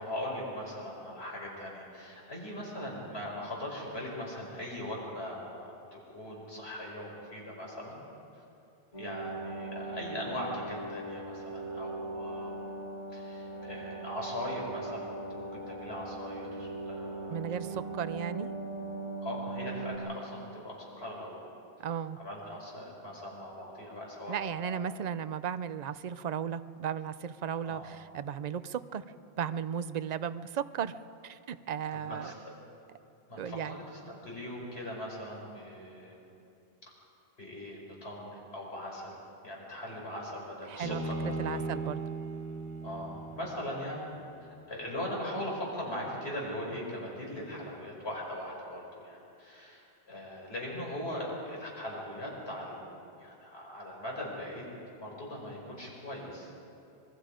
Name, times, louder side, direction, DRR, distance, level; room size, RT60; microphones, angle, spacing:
voice 1, 0.0-8.0 8.3-8.4 9.0-12.7 13.1-17.4 17.6-17.9 19.2-21.5 22.2-24.8 27.6-27.9 31.9-32.3 33.3-36.2 37.4-41.6 42.8-44.0 44.4-52.9 53.2-56.5, left 1 dB, 75° left, -3 dB, 5.4 m, -40 dB
sound 1, 8.9-20.0, right 2 dB, 35° left, 2.7 m, -40 dB
voice 2, 17.3-18.5 21.8-22.2 24.3-31.0 31.2-32.3 33.4-33.8 40.7-42.0, right 8 dB, 50° right, 13 dB, 0.6 m, -35 dB
Bowed string instrument, 40.8-44.1, right 3 dB, 15° left, 1.2 m, -37 dB
26.0 x 21.0 x 5.1 m, 2.6 s
omnidirectional pair, 1.1 m